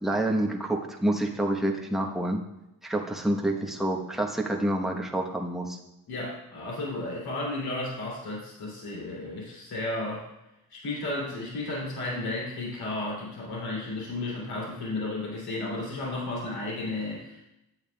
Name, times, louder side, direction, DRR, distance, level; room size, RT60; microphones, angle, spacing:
voice 1, 0.0-2.4 2.8-5.8, right 1 dB, ahead, 0 dB, 1.0 m, -28 dB
voice 2, 6.1-10.3 10.7-17.5, left 2 dB, 70° left, -4 dB, 3.0 m, -33 dB
9.0 x 8.1 x 2.3 m, 0.89 s
cardioid pair, 80°, 38 cm